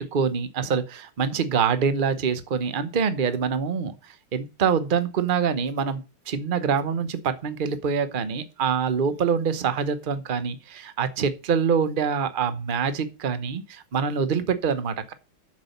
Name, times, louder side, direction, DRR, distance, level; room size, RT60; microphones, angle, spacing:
voice 1, 0.0-6.0 6.3-15.1, right 6 dB, 80° right, 11 dB, 0.4 m, -25 dB
7.4 x 6.1 x 7.1 m, 0.31 s
omnidirectional pair, 2.4 m